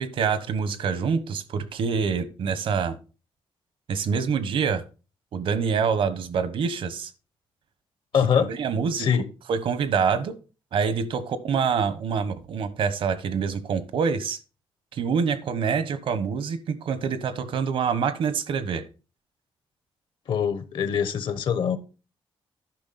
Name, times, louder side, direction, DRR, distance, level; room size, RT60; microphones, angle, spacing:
voice 1, 0.0-3.0 3.9-4.8 5.3-7.1 8.4-9.1 9.5-10.3 10.7-14.4 14.9-18.9, right 6 dB, 70° right, 1.1 m, -26 dB
voice 2, 8.1-8.5 9.0-9.2 20.3-21.8, left 7 dB, 65° left, 0.9 m, -23 dB
10.5 x 5.9 x 4.2 m
cardioid pair, 135°, 9 cm